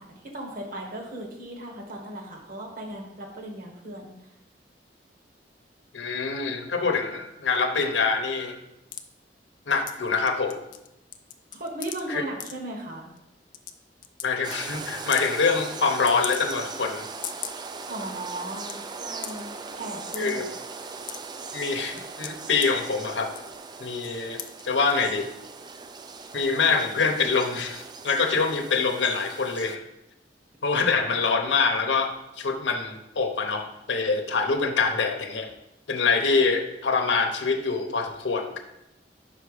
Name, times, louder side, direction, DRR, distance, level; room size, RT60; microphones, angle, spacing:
voice 1, 0.0-4.1 11.5-13.1 17.8-20.5, right 1 dB, 55° right, 0 dB, 1.5 m, -37 dB
voice 2, 5.9-8.6 9.7-10.6 12.1-12.2 14.2-17.1 20.2-20.4 21.5-23.3 23.8-25.3 26.3-29.8 30.6-35.5 35.9-38.6, left 4 dB, 85° left, 4 dB, 0.8 m, -25 dB
sound 1, 8.9-9.0 9.9-10.0 10.3-10.9 11.1-12.0 12.4-12.5 13.2-13.3 13.5-13.7 14.0-14.3 14.5-14.6 15.0-15.3 16.1-16.8 17.1-17.6 18.1-18.2 18.4-18.7 19.2-19.4 20.1-20.3 20.7-21.4 22.0-22.7 23.3-23.6 24.0-24.1 24.4-24.6 24.9-25.0, left 10 dB, 50° left, 0.5 m, -36 dB
sound 2, 14.4-29.8, right 4 dB, 25° right, 0.3 m, -39 dB
5.6 x 4.8 x 4.9 m, 0.87 s
head